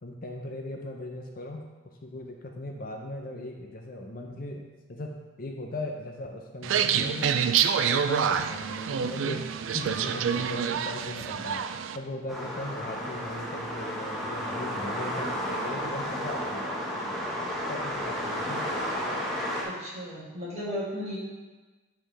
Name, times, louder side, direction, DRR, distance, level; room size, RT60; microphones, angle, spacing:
voice 1, 0.0-1.7 2.0-4.6 4.9-5.1 5.4-7.4 7.8-9.4 9.7-11.6 11.9-16.7 17.7-18.7, left 1 dB, 45° left, 2 dB, 0.6 m, -38 dB
sound 1, 6.6-12.0, right 7 dB, 70° right, 0.4 m, -27 dB
sound 2, 12.3-19.6, equal, ahead, 1.3 m, -32 dB
voice 2, 19.6-21.2, equal, 30° right, -7 dB, 2.1 m, -35 dB
8.6 x 5.6 x 3.4 m, 1.2 s
head